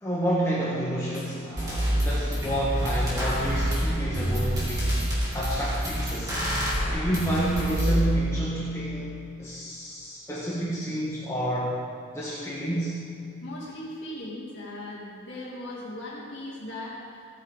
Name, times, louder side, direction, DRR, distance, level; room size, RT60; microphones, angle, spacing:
voice 1, 0.0-5.0 5.3-6.4 6.9-11.8 12.1-13.0, right 1 dB, 15° left, -7 dB, 1.4 m, -29 dB
sound 1, 1.1-1.2 1.6-8.0, equal, 15° right, 2.7 m, -27 dB
voice 2, 13.4-17.3, left 1 dB, 55° left, -6 dB, 2.5 m, -38 dB
16.0 x 9.4 x 3.7 m, 2.5 s
head